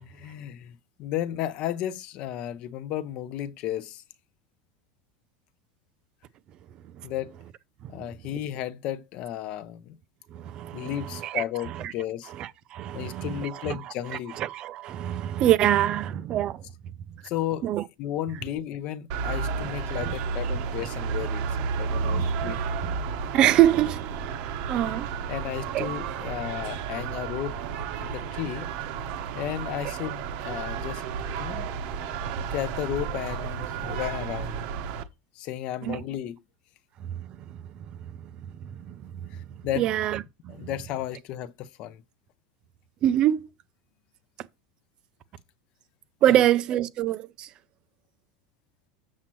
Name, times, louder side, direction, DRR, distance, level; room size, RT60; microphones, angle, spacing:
voice 1, 0.0-4.0 7.0-7.4 7.9-10.0 10.7-12.3 12.9-14.4 17.2-17.7 18.0-22.6 24.8-25.0 25.3-27.6 28.0-28.7 29.3-31.0 31.4-31.7 32.5-34.6 35.4-36.4 39.3-39.9 40.5-42.0 46.3-46.4, left 12 dB, 35° left, 0.6 m, -33 dB
voice 2, 10.3-11.4 11.7-11.9 12.4-13.8 14.1-16.6 17.6-17.8 22.1-22.5 22.8-22.9 23.3-24.2 24.7-25.1 25.7-25.9 35.8-36.0 38.6-38.9 39.8-40.5 43.0-43.5 46.2-47.5, right 12 dB, 25° right, 0.4 m, -25 dB
sound 1, 19.1-35.0, right 6 dB, 45° right, 0.8 m, -32 dB
7.4 x 7.2 x 3.0 m
supercardioid pair, 180°, 3 cm